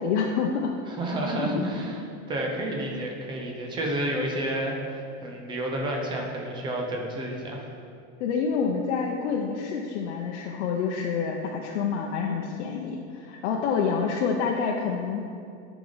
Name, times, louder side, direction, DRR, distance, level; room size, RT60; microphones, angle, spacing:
voice 1, 0.0-0.7 1.4-1.5 8.2-15.2, left 6 dB, 80° left, -1 dB, 0.8 m, -27 dB
voice 2, 0.9-2.0 2.3-7.7, right 1 dB, 15° right, 0 dB, 0.6 m, -30 dB
10.5 x 5.1 x 4.0 m, 2.4 s
supercardioid pair, 180°, 34 cm